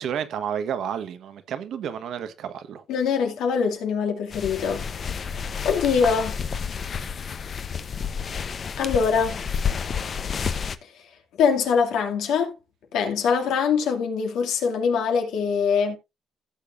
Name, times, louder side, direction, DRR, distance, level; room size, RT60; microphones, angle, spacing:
voice 1, 0.0-2.8, right 8 dB, 75° right, 1.2 m, -31 dB
voice 2, 2.9-5.1 5.5-6.4 8.8-9.4 11.4-12.5 12.9-16.0, left 6 dB, 85° left, 2.4 m, -23 dB
sound 1, 4.3-10.8, left 6 dB, 45° left, 0.8 m, -30 dB
16.0 x 6.9 x 2.6 m
cardioid pair, 90°, 0 cm